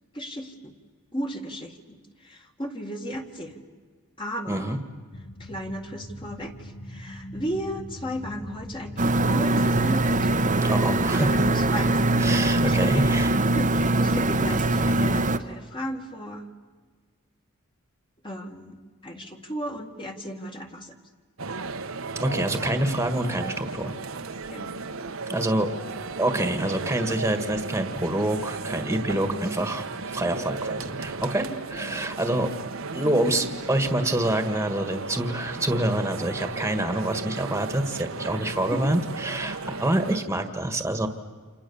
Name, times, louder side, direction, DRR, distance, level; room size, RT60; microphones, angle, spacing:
voice 1, 0.1-0.7 1.1-2.0 2.2-3.7 4.2-4.8 5.4-10.3 11.0-13.2 13.5-16.5 18.2-21.0 24.5-24.9 29.1-29.5 31.8-32.0 38.7-38.9, equal, 25° left, 3 dB, 1.9 m, -35 dB
voice 2, 4.5-4.8 10.6-11.3 12.2-13.3 22.1-23.9 25.3-25.7 26.2-32.5 32.9-41.1, right 1 dB, 10° right, 8 dB, 1.7 m, -26 dB
sound 1, 5.1-12.4, left 1 dB, 60° left, 2.3 m, -41 dB
sound 2, 9.0-15.4, right 2 dB, 35° right, 1.0 m, -22 dB
sound 3, 21.4-40.2, right 3 dB, 65° right, 1.2 m, -35 dB
29.0 x 27.5 x 7.1 m, 1.5 s
head